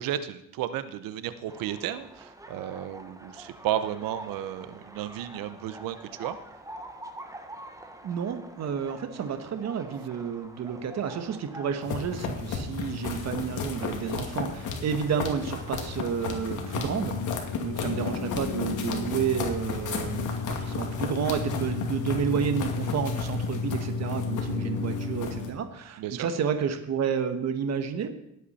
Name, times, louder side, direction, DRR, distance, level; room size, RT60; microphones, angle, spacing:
voice 1, 0.0-6.4 26.0-26.3, right 11 dB, 85° right, 12 dB, 1.0 m, -33 dB
sound 1, 1.5-12.3, right 1 dB, 10° right, 1.1 m, -46 dB
voice 2, 8.0-28.2, right 7 dB, 50° right, 8 dB, 1.3 m, -31 dB
sound 2, 11.8-25.5, left 5 dB, 65° left, 2.3 m, -32 dB
18.5 x 8.3 x 4.3 m, 0.81 s
cardioid pair, 120°, 33 cm